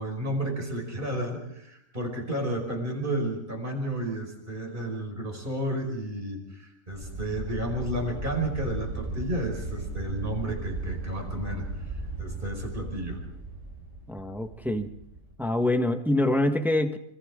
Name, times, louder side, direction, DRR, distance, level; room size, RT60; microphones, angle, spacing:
voice 1, 0.0-11.6 12.2-13.2, right 1 dB, 35° right, 2 dB, 5.6 m, -32 dB
sound 1, 6.9-15.3, right 2 dB, 55° right, 8.6 m, -36 dB
voice 2, 14.1-14.9 15.4-17.0, left 1 dB, ahead, 4 dB, 1.3 m, -25 dB
26.5 x 25.5 x 3.8 m, 0.78 s
omnidirectional pair, 1.5 m